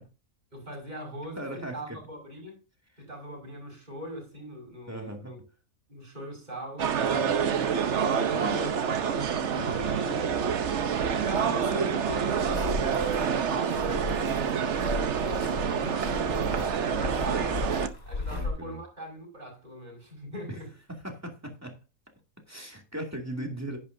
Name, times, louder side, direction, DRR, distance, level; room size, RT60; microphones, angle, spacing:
voice 1, 0.5-2.6 3.0-5.4 5.9-7.4 7.9-8.8 9.5-10.2 11.1-16.4 16.7-17.7 18.1-20.7, equal, 30° right, 5.5 m, -41 dB
voice 2, 1.4-2.0 4.9-5.3 9.5-10.2 16.2-16.6 18.3-18.8 21.0-21.8 22.5-23.8, right 1 dB, 10° right, 2.3 m, -38 dB
sound 1, 6.8-17.9, right 7 dB, 60° right, 1.1 m, -27 dB
sound 2, 12.3-18.5, left 3 dB, 80° left, 3.5 m, -36 dB
10.5 x 9.8 x 2.6 m
omnidirectional pair, 1.5 m